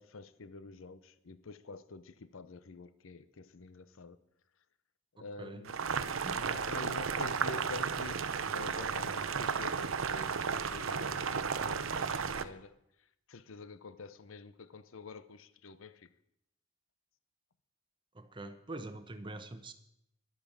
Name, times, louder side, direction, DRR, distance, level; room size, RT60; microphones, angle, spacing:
voice 1, 0.0-4.2 5.2-5.8 6.3-12.8 13.3-16.1, left 4 dB, 80° left, 0.7 m, -48 dB
Boiling, 5.7-12.4, right 6 dB, 85° right, 0.7 m, -34 dB
voice 2, 18.1-19.7, right 2 dB, 25° right, 1.0 m, -44 dB
11.5 x 8.5 x 7.2 m
head